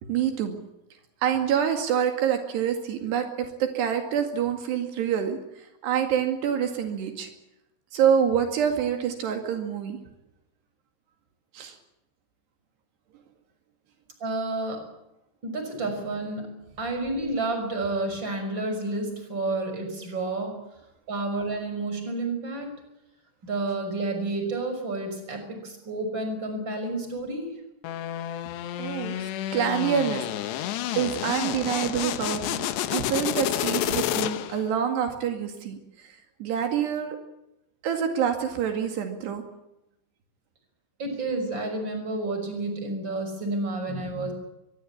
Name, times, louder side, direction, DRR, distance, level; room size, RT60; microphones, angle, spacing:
voice 1, 0.0-0.6 1.2-7.3 7.9-10.0 11.5-11.8 28.8-30.7 30.9-37.2 37.8-39.4, right 8 dB, 80° right, 5 dB, 4.3 m, -27 dB
voice 2, 14.2-14.9 15.4-20.6 21.1-22.7 23.4-27.6 41.0-44.3, right 2 dB, 25° right, 6 dB, 6.5 m, -30 dB
sound 1, 27.8-34.7, left 13 dB, 90° left, 3.3 m, -30 dB
23.5 x 22.5 x 8.7 m, 0.87 s
omnidirectional pair, 4.8 m